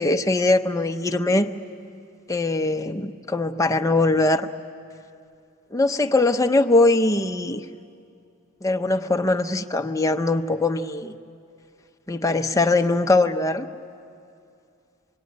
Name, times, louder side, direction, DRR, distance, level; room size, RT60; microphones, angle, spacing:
voice 1, 0.0-1.5 2.3-4.5 5.7-7.6 8.6-11.1 12.1-13.7, left 2 dB, 15° left, 5 dB, 0.7 m, -21 dB
26.0 x 21.5 x 9.6 m, 2.5 s
head